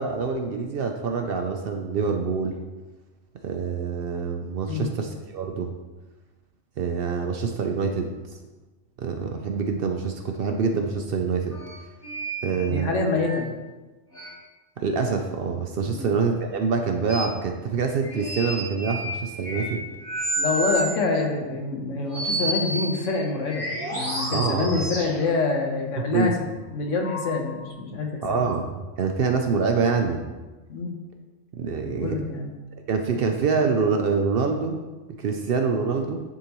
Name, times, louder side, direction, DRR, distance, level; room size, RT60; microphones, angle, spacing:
voice 1, 0.0-2.6 3.4-5.7 6.8-8.1 9.0-11.5 12.4-12.9 14.8-19.8 24.3-24.8 26.0-26.4 28.2-30.2 31.6-32.2 32.9-34.8 35.2-36.2, right 5 dB, 60° right, 4 dB, 0.6 m, -25 dB
sound 1, 11.5-11.7 12.0-13.4 14.1-14.3 17.1-17.3 18.0-19.8 20.0-21.2 22.1-25.3 27.0-27.7, right 1 dB, 25° left, 1.4 m, -31 dB
voice 2, 12.7-13.5 15.9-16.1 20.4-26.3 26.7-28.4 30.7-30.9 31.8-32.5, left 3 dB, 75° left, 2 dB, 1.3 m, -26 dB
9.8 x 3.7 x 3.0 m, 1.2 s
omnidirectional pair, 1.3 m